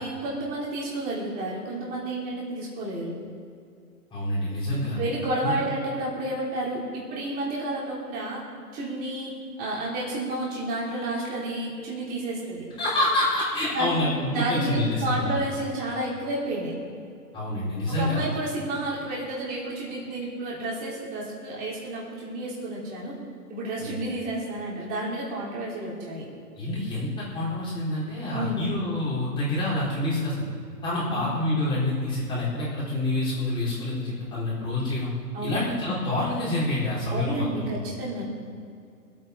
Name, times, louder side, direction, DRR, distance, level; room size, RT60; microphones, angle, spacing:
voice 1, 0.0-3.1 4.7-8.4 8.7-12.7 13.7-14.0 14.3-16.7 17.9-23.2 23.5-26.2 28.3-28.7 31.1-31.3 35.3-35.6 37.1-38.2, right 1 dB, 20° right, -5 dB, 3.3 m, -31 dB
voice 2, 4.1-5.0 5.4-5.6 12.8-15.3 17.3-18.2 23.8-24.0 26.6-30.3 30.8-35.1 35.4-37.7, left 1 dB, 10° left, -8 dB, 4.2 m, -27 dB
25.0 x 8.7 x 4.6 m, 2.3 s
hypercardioid pair, 155°, 49 cm